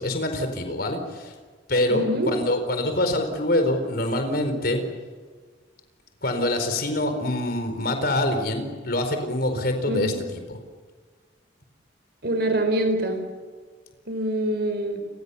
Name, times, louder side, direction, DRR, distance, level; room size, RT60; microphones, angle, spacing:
voice 1, 0.0-1.3 1.7-4.8 6.2-10.6, left 1 dB, 50° left, 7 dB, 4.4 m, -25 dB
voice 2, 1.9-2.3 9.9-10.2 12.2-13.2 14.1-15.0, right 1 dB, 55° right, 7 dB, 4.6 m, -25 dB
29.5 x 25.0 x 7.1 m, 1.5 s
head